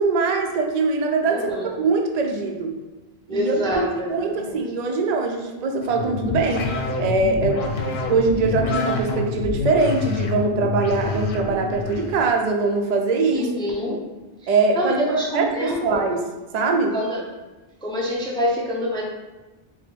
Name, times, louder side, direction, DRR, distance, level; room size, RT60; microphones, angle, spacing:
voice 1, 0.0-1.5 1.7-2.7 3.3-6.7 7.0-7.7 8.1-13.5 13.9-14.0 14.5-16.2 16.5-17.0, right 3 dB, 55° right, 2 dB, 0.5 m, -22 dB
voice 2, 1.3-1.7 3.3-4.6 13.3-14.0 14.4-16.0 16.9-17.2 17.8-19.0, equal, 5° left, -3 dB, 0.4 m, -26 dB
sound 1, 5.8-12.2, left 3 dB, 80° left, 0.9 m, -27 dB
4.2 x 2.1 x 4.5 m, 1.2 s
omnidirectional pair, 1.0 m